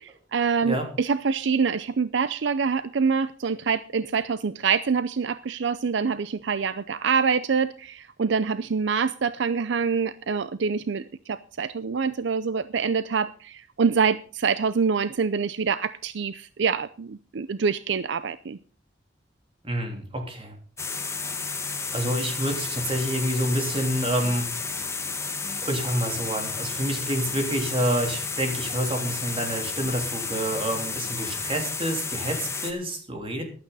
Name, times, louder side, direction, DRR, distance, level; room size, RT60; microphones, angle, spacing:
voice 1, 0.0-18.6, right 5 dB, 70° right, 15 dB, 0.5 m, -25 dB
voice 2, 19.6-20.5 21.9-24.5 25.6-33.4, right 1 dB, 30° right, 3 dB, 3.2 m, -28 dB
sound 1, 20.8-32.7, left 4 dB, 15° left, 1.4 m, -32 dB
15.0 x 11.5 x 4.1 m, 0.40 s
head